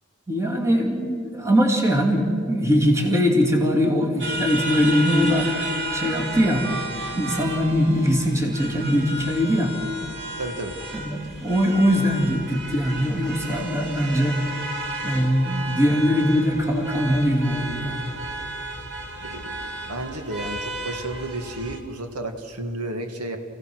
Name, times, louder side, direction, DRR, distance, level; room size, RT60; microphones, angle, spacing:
voice 1, 0.3-5.5 5.9-6.7 7.2-9.7 10.9-14.4 15.0-18.0, equal, 15° right, 0 dB, 2.5 m, -21 dB
sound 1, 4.2-21.8, right 1 dB, 50° right, 2.6 m, -33 dB
voice 2, 10.4-10.8 19.2-23.4, right 1 dB, 90° right, 5 dB, 2.0 m, -32 dB
28.5 x 16.5 x 6.3 m, 2.3 s
head